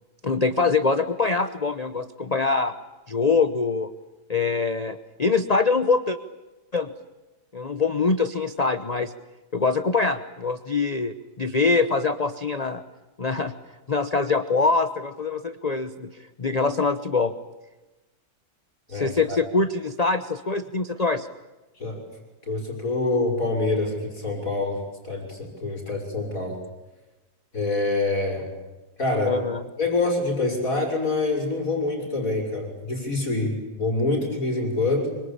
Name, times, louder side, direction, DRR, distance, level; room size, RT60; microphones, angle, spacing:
voice 1, 0.2-2.7 3.1-3.9 4.3-6.2 6.7-6.9 7.5-9.1 9.5-12.8 13.2-13.5 13.9-17.3 18.9-21.3 29.3-29.6, left 4 dB, 30° left, 10 dB, 0.9 m, -24 dB
voice 2, 18.9-19.4 21.8-22.0 22.5-26.6 27.5-28.5 29.0-29.4 29.8-35.2, left 2 dB, 50° left, 1 dB, 6.1 m, -26 dB
25.5 x 25.0 x 8.7 m, 1.1 s
omnidirectional pair, 1.8 m